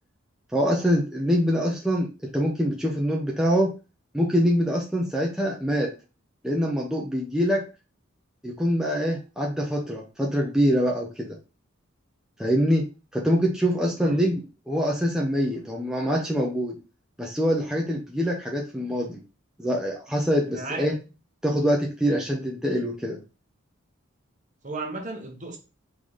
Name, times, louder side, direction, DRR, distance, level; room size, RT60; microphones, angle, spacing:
voice 1, 0.5-2.1 2.3-3.7 4.1-5.9 6.4-7.6 8.4-11.4 12.4-12.8 13.1-16.8 17.2-19.2 19.6-20.9 21.4-23.2, equal, 5° right, 0.7 m, -24 dB
voice 2, 20.5-20.9 24.6-25.6, right 2 dB, 35° right, 1.1 m, -34 dB
3.9 x 3.8 x 3.2 m
head